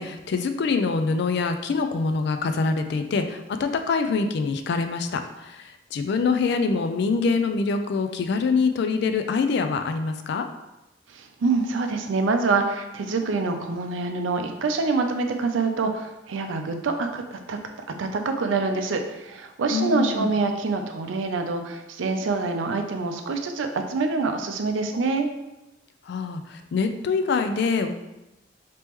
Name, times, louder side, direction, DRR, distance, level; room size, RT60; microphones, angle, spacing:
voice 1, 0.0-5.6 5.9-10.5 19.7-20.3 26.1-27.9, left 4 dB, 60° left, 7 dB, 0.3 m, -25 dB
voice 2, 11.1-17.6 18.0-25.3, right 3 dB, 75° right, 5 dB, 0.4 m, -26 dB
3.4 x 2.9 x 3.0 m, 0.96 s
head